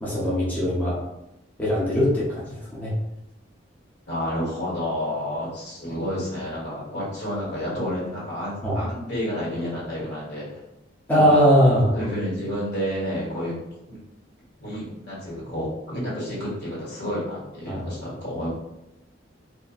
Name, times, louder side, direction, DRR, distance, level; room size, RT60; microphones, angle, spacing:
voice 1, 0.0-1.0 1.6-2.9 8.6-8.8 11.1-11.9 17.7-17.9, equal, 10° left, -8 dB, 0.6 m, -20 dB
voice 2, 4.1-10.6 11.1-11.5 11.9-13.5 13.9-14.0 14.6-18.5, equal, 60° left, -7 dB, 1.3 m, -30 dB
2.7 x 2.4 x 2.3 m, 0.90 s
head